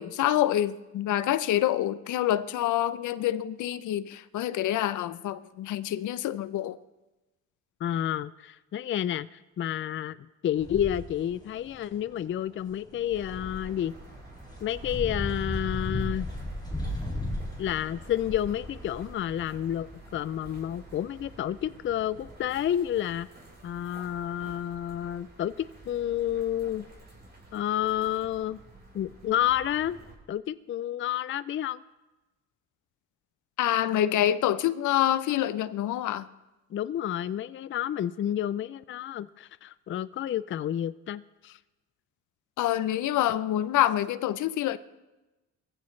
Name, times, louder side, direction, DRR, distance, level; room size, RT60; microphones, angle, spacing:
voice 1, 0.0-6.8 33.6-36.3 42.6-44.8, left 12 dB, 75° left, 15 dB, 0.7 m, -26 dB
voice 2, 7.8-14.0 14.6-16.3 17.6-23.3 23.6-26.9 27.5-28.6 28.9-30.0 30.3-31.8 36.7-41.6, left 11 dB, 40° left, 16 dB, 0.4 m, -30 dB
sound 1, 10.6-22.6, left 1 dB, 15° left, 3.5 m, -36 dB
sound 2, 13.1-30.2, right 2 dB, 35° right, 5.8 m, -50 dB
20.5 x 15.5 x 3.2 m, 1.1 s
cardioid pair, 90°, 30 cm